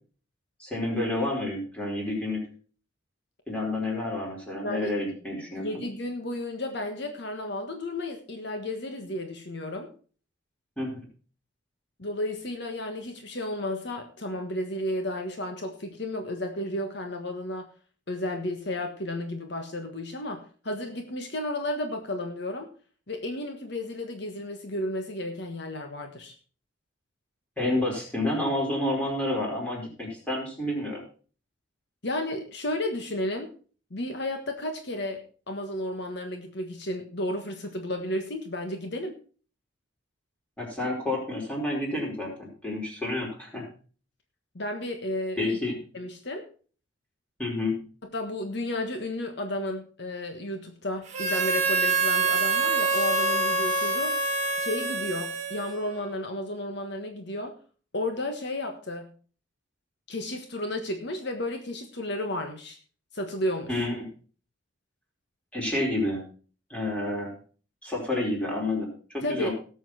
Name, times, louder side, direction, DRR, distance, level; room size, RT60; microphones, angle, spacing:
voice 1, 0.6-2.4 3.5-5.8 10.8-11.0 27.6-31.0 40.6-43.7 45.4-45.8 47.4-47.7 63.7-64.1 65.5-66.2 66.7-67.3 67.8-69.5, left 1 dB, 5° left, -2 dB, 4.7 m, -29 dB
voice 2, 5.6-9.9 12.0-17.7 18.1-22.7 23.1-26.3 32.0-33.5 33.9-35.2 35.5-39.1 44.5-45.6 45.9-46.5 48.1-54.2 54.6-57.5 57.9-59.1 60.1-62.8 63.1-63.8 69.2-69.5, left 1 dB, 60° left, 5 dB, 1.4 m, -33 dB
Harmonica, 51.1-56.0, right 3 dB, 35° right, 2.0 m, -26 dB
17.5 x 7.3 x 4.3 m, 0.40 s
head